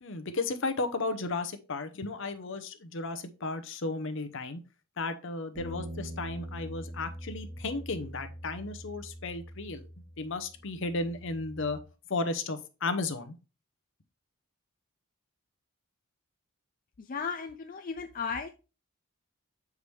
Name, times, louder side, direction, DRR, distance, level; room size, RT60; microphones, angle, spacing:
voice 1, 0.0-4.6 5.0-9.9 10.2-11.8 12.1-13.3, left 3 dB, 60° left, 10 dB, 0.8 m, -34 dB
sound 1, 5.5-11.8, equal, 25° right, 2.4 m, -43 dB
voice 2, 17.0-18.5, left 5 dB, 40° left, 6 dB, 0.4 m, -35 dB
6.9 x 4.7 x 3.2 m, 0.32 s
head